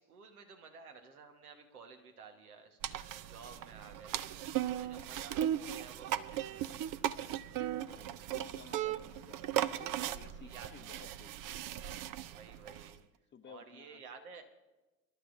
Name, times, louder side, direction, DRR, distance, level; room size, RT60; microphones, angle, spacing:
voice 1, 0.0-7.3 9.7-9.9 10.3-10.7 12.2-13.0 13.5-14.4, right 5 dB, 85° right, 5 dB, 1.4 m, -54 dB
sound 1, 2.8-13.0, right 11 dB, 50° right, 0.6 m, -37 dB
voice 2, 7.8-11.3 13.3-14.0, left 7 dB, 25° left, 11 dB, 0.8 m, -56 dB
28.5 x 12.0 x 2.6 m, 1.1 s
hypercardioid pair, 60°, 43 cm